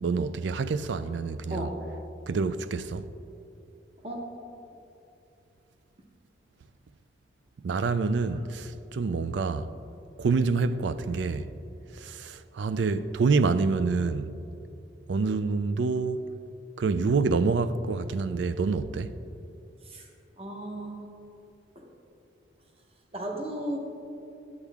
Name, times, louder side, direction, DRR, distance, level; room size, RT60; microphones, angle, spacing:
voice 1, 0.0-1.7 2.3-3.1 7.6-9.7 10.2-11.5 11.9-14.4 15.1-16.3 16.8-19.1, right 4 dB, 80° right, 0.4 m, -27 dB
voice 2, 20.4-21.0 21.7-21.9 23.1-23.8, right 1 dB, 30° right, 0.9 m, -35 dB
11.5 x 8.2 x 3.5 m
head